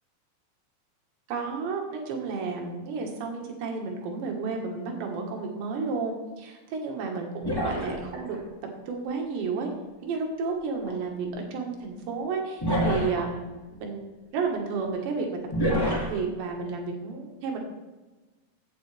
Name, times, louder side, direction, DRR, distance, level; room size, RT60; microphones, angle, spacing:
voice 1, 1.3-8.4 8.9-9.7 10.0-14.1 14.3-17.6, right 4 dB, 75° right, 1 dB, 3.7 m, -32 dB
sound 1, 7.4-8.3 10.7-10.9 12.6-13.3 15.5-16.1, equal, 20° left, 0.6 m, -27 dB
16.0 x 7.8 x 3.4 m, 1.2 s
omnidirectional pair, 5.2 m